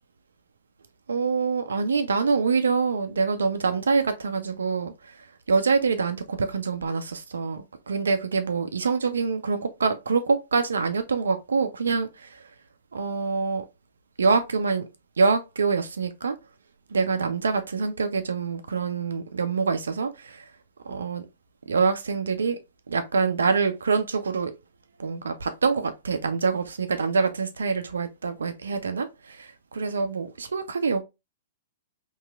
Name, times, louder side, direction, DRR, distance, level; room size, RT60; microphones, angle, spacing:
voice 1, 1.1-12.5 12.9-13.6 14.2-14.9 15.2-16.4 16.9-20.5 20.9-21.3 21.7-22.6 22.9-24.5 25.0-31.0, right 4 dB, 75° right, 0.3 m, -25 dB
3.0 x 2.9 x 2.3 m
figure-of-eight pair, 110°, 0 cm